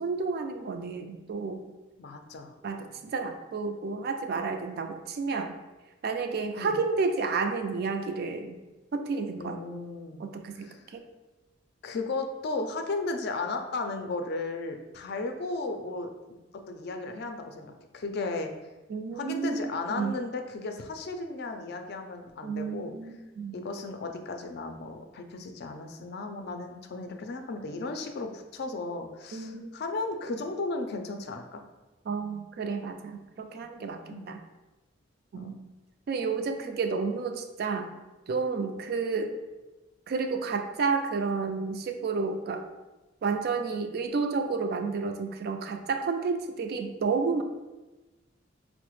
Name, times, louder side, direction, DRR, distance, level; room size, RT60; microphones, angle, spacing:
voice 1, 0.0-1.7 2.6-5.6 6.0-8.6 8.9-9.6 10.2-11.0 18.9-20.2 22.4-23.6 29.3-29.7 32.1-34.4 35.3-35.6 36.1-37.9 38.3-39.3 40.1-42.6 43.2-47.4, right 4 dB, 55° right, 6 dB, 0.3 m, -31 dB
voice 2, 2.0-2.5 6.6-6.8 9.4-10.2 10.6-10.8 11.8-16.4 16.7-18.5 19.1-22.9 23.5-31.6 34.1-34.3 35.3-35.5, left 3 dB, 60° left, 5 dB, 0.4 m, -35 dB
4.7 x 2.1 x 3.0 m, 1.1 s
head